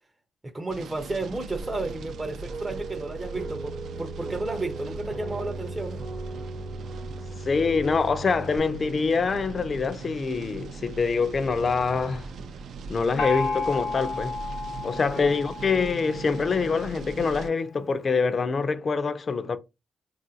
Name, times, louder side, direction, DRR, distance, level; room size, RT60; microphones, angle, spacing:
voice 1, 0.4-6.0 15.1-15.3, right 2 dB, 20° right, 0.5 m, -32 dB
sound 1, 0.7-17.5, right 4 dB, 75° right, 0.4 m, -40 dB
sound 2, 1.6-8.6, right 2 dB, 50° right, 0.8 m, -38 dB
voice 2, 7.4-12.3 12.9-14.4 14.8-19.6, left 4 dB, 45° left, 0.4 m, -25 dB
Gong, 13.2-16.7, left 4 dB, 75° left, 0.9 m, -32 dB
3.5 x 2.4 x 2.7 m
cardioid pair, 75°, 0 cm